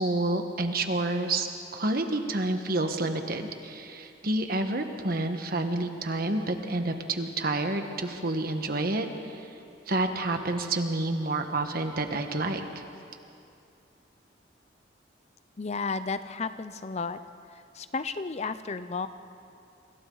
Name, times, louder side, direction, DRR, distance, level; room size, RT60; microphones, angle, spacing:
voice 1, 0.0-9.5 9.9-12.8, right 2 dB, 50° right, 6 dB, 1.4 m, -29 dB
voice 2, 15.6-17.2 17.5-19.1, left 4 dB, 35° left, 12 dB, 0.5 m, -33 dB
28.0 x 26.5 x 4.0 m, 2.6 s
head